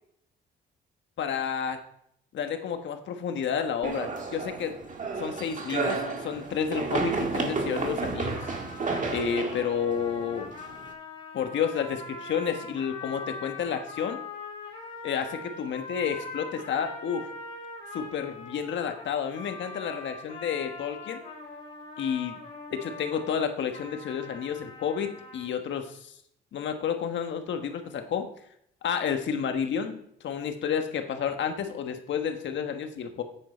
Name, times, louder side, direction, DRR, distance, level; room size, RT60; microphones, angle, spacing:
voice 1, 1.2-1.8 2.3-4.8 5.2-6.0 6.2-8.5 9.1-10.5 11.3-14.2 15.0-17.3 17.9-21.2 22.0-22.4 22.7-26.1 26.5-28.3 28.8-33.2, left 7 dB, 70° left, 6 dB, 1.4 m, -30 dB
sound 1, 3.8-10.9, right 4 dB, 40° right, 1.7 m, -32 dB
sound 2, 8.3-25.5, left 3 dB, 30° left, 3.5 m, -42 dB
9.2 x 9.0 x 4.4 m, 0.72 s
cardioid pair, 90°, 20 cm